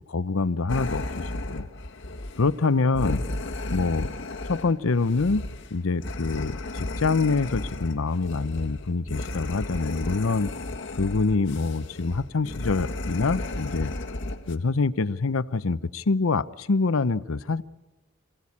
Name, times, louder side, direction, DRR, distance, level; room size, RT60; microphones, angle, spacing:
voice 1, 0.1-1.7 2.4-3.2 3.7-4.1 4.5-5.4 5.7-10.5 11.0-13.9 14.5-17.6, left 3 dB, 90° left, 0.7 m, -25 dB
sound 1, 0.7-14.6, left 2 dB, 60° left, 1.7 m, -34 dB
27.0 x 16.5 x 8.6 m
head